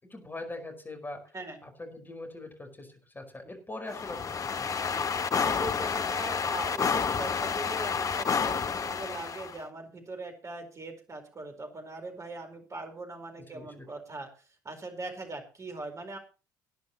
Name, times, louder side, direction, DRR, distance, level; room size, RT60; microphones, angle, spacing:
voice 1, 0.0-1.2 1.6-4.8 13.5-13.9, left 2 dB, 20° left, 4 dB, 5.1 m, -42 dB
sound 1, 3.9-9.6, left 6 dB, 35° left, 1.0 m, -30 dB
voice 2, 5.4-16.2, right 2 dB, 30° right, 5 dB, 4.5 m, -41 dB
20.5 x 10.5 x 3.0 m, 0.34 s
figure-of-eight pair, 50°, 10 cm